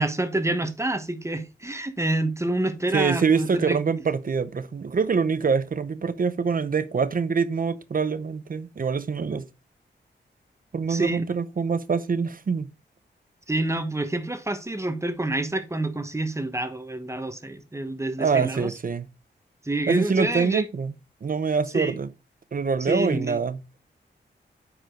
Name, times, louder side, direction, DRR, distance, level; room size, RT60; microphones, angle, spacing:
voice 1, 0.0-3.8 10.9-11.2 13.5-18.7 19.6-20.6 21.7-21.9 22.8-23.4, right 1 dB, 15° right, 1.1 m, -27 dB
voice 2, 2.9-9.5 10.7-12.7 18.2-19.1 19.9-20.9 21.2-22.1 22.5-23.6, right 5 dB, 50° right, 0.7 m, -25 dB
9.6 x 4.9 x 3.7 m
wide cardioid pair, 105°, 19 cm